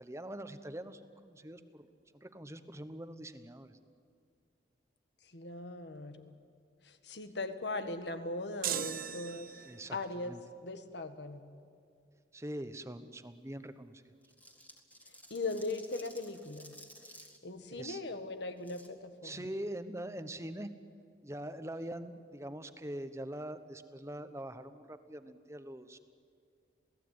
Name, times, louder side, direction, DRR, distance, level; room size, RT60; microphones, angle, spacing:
voice 1, 0.0-1.9 2.1-3.8 9.6-10.0 10.2-10.4 12.3-14.1 17.0-17.2 17.7-18.0 19.2-20.7 21.2-26.0, right 1 dB, 15° right, 10 dB, 1.1 m, -43 dB
voice 2, 5.3-6.3 6.8-9.6 9.9-10.3 10.6-11.4 15.3-16.7 17.4-19.5, left 2 dB, 75° left, 9 dB, 1.7 m, -39 dB
sound 1, 8.6-9.9, right 10 dB, 50° right, 0.9 m, -38 dB
sound 2, 14.2-17.4 18.6-18.9, equal, 10° left, 1.9 m, -55 dB
28.0 x 17.5 x 9.5 m, 2.4 s
head